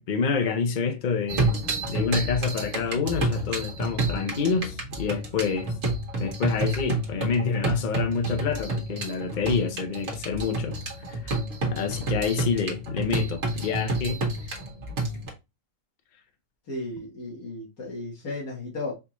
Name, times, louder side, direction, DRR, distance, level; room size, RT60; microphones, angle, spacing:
voice 1, 0.0-5.7 6.2-10.8 11.2-11.4 11.7-14.2, left 5 dB, 50° left, 0.6 m, -27 dB
sound 1, 1.3-15.3, right 2 dB, 55° right, 1.3 m, -29 dB
voice 2, 16.7-18.9, left 2 dB, 90° left, 1.8 m, -34 dB
4.5 x 2.5 x 2.9 m
omnidirectional pair, 1.5 m